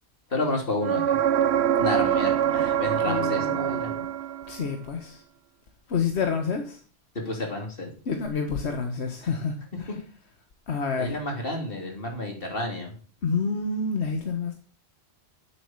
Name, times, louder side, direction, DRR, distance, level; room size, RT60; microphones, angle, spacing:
voice 1, 0.3-1.2 1.8-3.9 7.1-7.9 11.0-12.9, left 2 dB, 60° left, 3.4 m, -30 dB
sound 1, 0.8-4.6 8.3-8.4, right 10 dB, 75° right, 1.0 m, -24 dB
voice 2, 2.0-2.6 3.0-4.1 4.5-5.2 5.9-6.8 8.1-10.0 10.7-11.2 13.2-14.5, left 5 dB, 85° left, 1.5 m, -29 dB
9.6 x 7.9 x 7.3 m
omnidirectional pair, 1.1 m